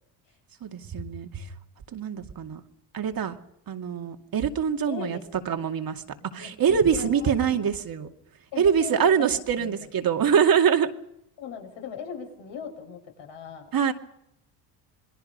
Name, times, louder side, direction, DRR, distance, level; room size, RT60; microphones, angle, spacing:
voice 1, 0.6-1.5 1.9-2.6 2.9-3.4 3.7-5.2 5.5-6.0 6.3-8.1 8.6-10.9 13.7-13.9, right 7 dB, 45° right, 4 dB, 2.4 m, -24 dB
voice 2, 4.9-5.4 6.4-7.3 8.5-9.3 9.6-9.9 11.4-13.7, left 6 dB, 65° left, 4 dB, 7.1 m, -38 dB
27.5 x 21.0 x 5.5 m, 0.77 s
supercardioid pair, 85°, 48 cm